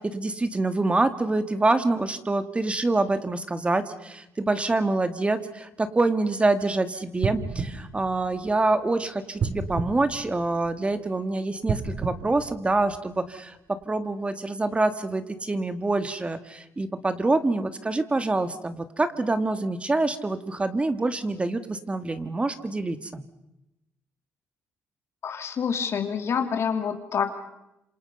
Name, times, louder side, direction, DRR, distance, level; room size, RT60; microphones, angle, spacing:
voice 1, 0.0-23.2, right 2 dB, 20° right, 10 dB, 2.0 m, -26 dB
sound 1, 7.2-8.8 9.4-10.9 11.6-13.3 13.8-13.9, right 5 dB, 55° right, 3.5 m, -32 dB
voice 2, 25.2-27.4, left 6 dB, 55° left, 7 dB, 2.9 m, -27 dB
27.5 x 27.0 x 5.6 m, 0.89 s
cardioid pair, 75°, 5 cm